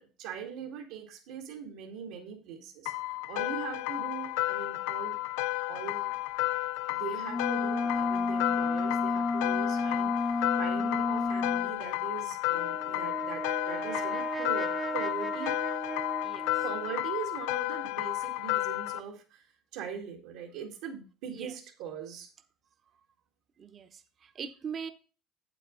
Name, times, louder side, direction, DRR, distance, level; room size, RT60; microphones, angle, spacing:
voice 1, 0.0-5.2 5.7-6.1 6.9-15.6 16.6-22.3, right 7 dB, 80° right, 2.0 m, -41 dB
sound 1, 2.9-19.0, left 19 dB, 85° left, 0.4 m, -32 dB
sound 2, 7.3-11.7, left 3 dB, 15° left, 0.3 m, -30 dB
Brass instrument, 12.5-16.9, right 3 dB, 15° right, 0.7 m, -37 dB
voice 2, 16.2-16.6 21.3-21.5 23.6-24.9, right 6 dB, 35° right, 1.0 m, -41 dB
8.4 x 8.2 x 3.8 m
cardioid pair, 125°, 0 cm